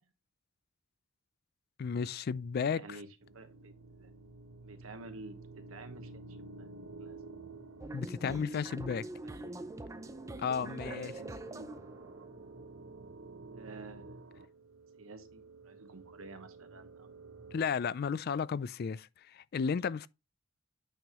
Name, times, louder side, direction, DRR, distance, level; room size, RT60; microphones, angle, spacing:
voice 1, 1.8-2.8 7.9-9.0 10.4-11.1 17.5-20.1, left 6 dB, 50° left, 0.3 m, -33 dB
voice 2, 2.7-4.1 4.6-5.4 5.7-6.7 7.0-7.2 9.2-9.7 10.4-11.8 13.6-14.2 15.0-17.3, right 2 dB, 90° right, 1.2 m, -51 dB
sound 1, 3.2-17.7, right 3 dB, 70° right, 0.9 m, -51 dB
sound 2, 7.8-13.6, right 1 dB, 15° right, 0.5 m, -44 dB
8.9 x 5.4 x 3.0 m
head